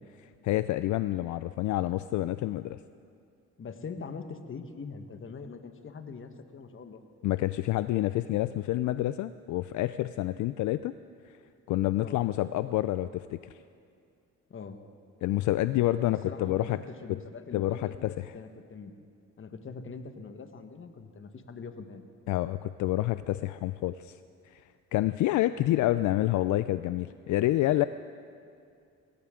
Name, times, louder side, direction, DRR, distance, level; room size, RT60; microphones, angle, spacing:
voice 1, 0.2-2.8 7.2-10.9 11.3-11.4 11.7-13.5 15.2-16.8 17.5-18.3 22.3-24.2 24.5-24.6 24.9-27.8, left 15 dB, 75° left, 13 dB, 0.4 m, -28 dB
voice 2, 3.6-7.0 11.9-12.2 14.5-14.8 16.0-18.9 19.4-22.1, left 5 dB, 40° left, 7 dB, 1.4 m, -42 dB
21.0 x 17.5 x 3.8 m, 2.4 s
cardioid pair, 90°, 30 cm